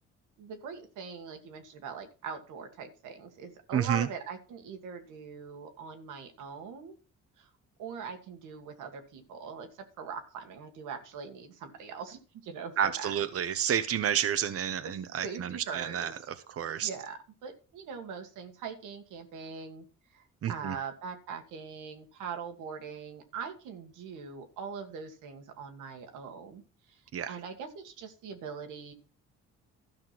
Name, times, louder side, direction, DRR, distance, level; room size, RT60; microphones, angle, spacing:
voice 1, 0.4-6.9 7.4-7.5 7.8-9.7 10.0-13.2 13.5-13.6 14.8-16.2 16.8-19.9 20.1-26.6 26.9-27.0 27.3-28.9, right 6 dB, 90° right, 1.9 m, -42 dB
voice 2, 3.7-4.1 12.8-16.1 16.5-16.9 20.4-20.8 27.1-27.4, right 9 dB, 50° right, 0.8 m, -30 dB
12.5 x 6.0 x 5.9 m
cardioid pair, 90°, 30 cm